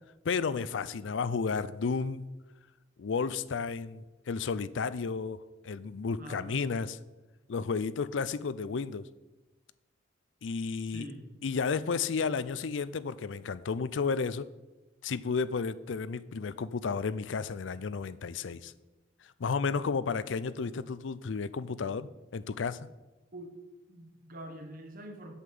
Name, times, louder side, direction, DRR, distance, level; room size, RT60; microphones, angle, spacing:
voice 1, 0.2-2.4 3.0-5.4 5.6-7.0 7.5-9.1 10.4-11.1 11.4-14.5 15.0-18.7 19.4-22.8, left 5 dB, 80° left, 16 dB, 0.5 m, -32 dB
voice 2, 6.2-6.8 10.9-11.2 23.3-23.5 23.9-25.3, right 1 dB, 50° right, 4 dB, 1.5 m, -45 dB
8.1 x 5.6 x 7.7 m, 1.1 s
head